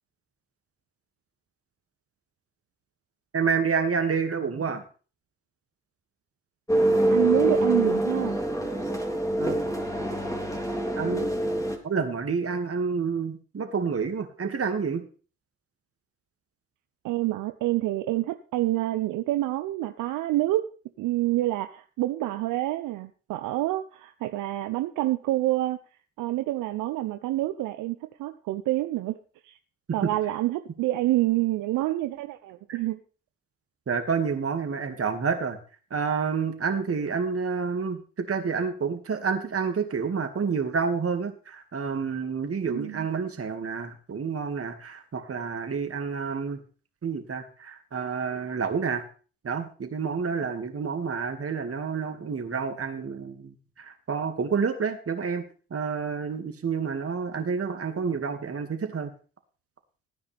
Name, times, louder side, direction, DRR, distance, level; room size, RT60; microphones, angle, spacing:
voice 1, 3.3-4.8 9.4-9.6 11.0-11.3 11.8-15.0 30.0-30.1 32.7-32.8 33.9-35.6 35.9-46.6 47.0-49.1 49.4-55.4 55.7-59.1, right 5 dB, 45° right, 6 dB, 2.2 m, -29 dB
sound 1, 6.7-11.8, right 1 dB, 10° left, 3.1 m, -25 dB
voice 2, 7.1-8.4 17.0-20.6 21.0-25.8 26.2-29.2 29.4-29.6 29.9-33.0 42.7-43.1, right 16 dB, 75° right, 9 dB, 0.7 m, -27 dB
15.5 x 9.5 x 3.5 m, 0.38 s
hypercardioid pair, 50°, 32 cm